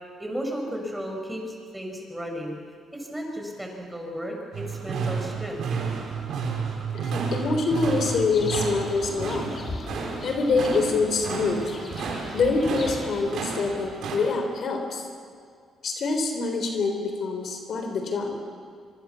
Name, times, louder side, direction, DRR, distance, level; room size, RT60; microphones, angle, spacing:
voice 1, 0.2-2.6 2.9-5.6, equal, 5° right, 1 dB, 6.3 m, -34 dB
sound 1, 4.5-14.2, right 5 dB, 70° right, 5.5 m, -32 dB
voice 2, 6.9-9.5 10.2-11.7 12.3-15.1 15.8-18.4, left 3 dB, 60° left, 5 dB, 3.8 m, -25 dB
sound 2, 7.7-14.0, left 3 dB, 40° left, 3.7 m, -38 dB
25.0 x 24.5 x 7.1 m, 2.1 s
cardioid pair, 90°, 0 cm